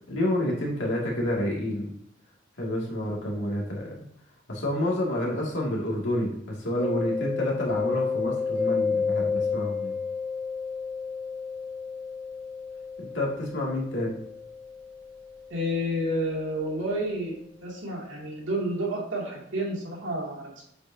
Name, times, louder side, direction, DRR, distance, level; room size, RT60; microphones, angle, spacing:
voice 1, 0.1-1.9 2.6-4.0 4.5-9.9 13.0-14.2, left 1 dB, 65° left, -3 dB, 2.4 m, -29 dB
Mallet percussion, 6.8-16.4, left 5 dB, 45° right, 2.6 m, -31 dB
voice 2, 15.5-17.4 17.6-20.6, equal, 70° right, -3 dB, 2.6 m, -30 dB
8.1 x 6.3 x 2.8 m, 0.73 s
head